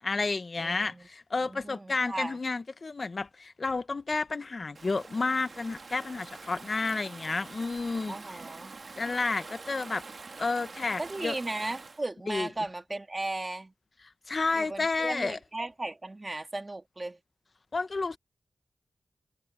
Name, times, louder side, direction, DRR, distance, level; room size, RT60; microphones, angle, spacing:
voice 1, 0.0-8.1 9.0-10.0 10.4-11.4 12.3-12.5 14.3-15.4 17.7-18.2, left 3 dB, 50° left, 1.0 m, -31 dB
voice 2, 0.6-1.1 1.4-2.4 8.1-8.7 11.0-13.7 14.5-17.2, right 2 dB, 30° right, 2.2 m, -36 dB
Stream / Ocean, 4.7-12.0, right 4 dB, 60° right, 1.7 m, -45 dB
wide cardioid pair, 70°, 0 cm